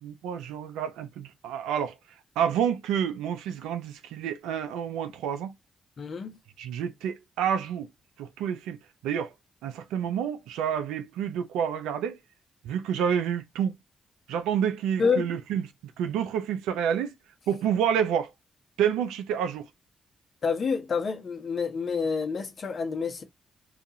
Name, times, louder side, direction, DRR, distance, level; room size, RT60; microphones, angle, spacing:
voice 1, 0.0-1.9 2.4-5.5 6.6-7.9 8.2-8.8 9.0-9.3 9.6-12.2 12.6-13.7 14.3-15.7 16.0-17.1 17.5-18.3 18.8-19.7, right 8 dB, 85° right, 0.4 m, -28 dB
voice 2, 6.0-6.4 15.0-15.3 20.4-23.2, left 5 dB, 55° left, 0.8 m, -28 dB
2.4 x 2.4 x 2.7 m
hypercardioid pair, 45°, 0 cm